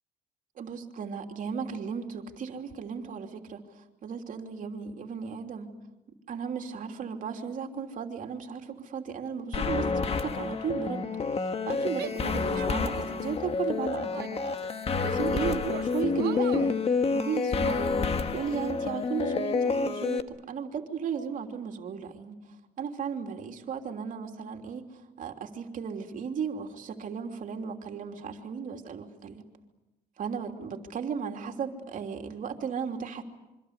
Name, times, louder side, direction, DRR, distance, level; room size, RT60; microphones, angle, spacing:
voice 1, 0.6-5.7 6.3-14.4 15.0-16.8 17.1-22.4 22.8-29.4 30.2-33.2, right 6 dB, 50° right, 4 dB, 3.2 m, -35 dB
sound 1, 9.5-20.2, left 4 dB, 35° left, 1.5 m, -29 dB
Female speech woman speaking / Yell, 11.9-13.3 13.7-15.3 15.7-16.7, right 14 dB, 75° right, 1.0 m, -42 dB
26.5 x 24.5 x 8.3 m, 1.0 s
cardioid pair, 110°, 17 cm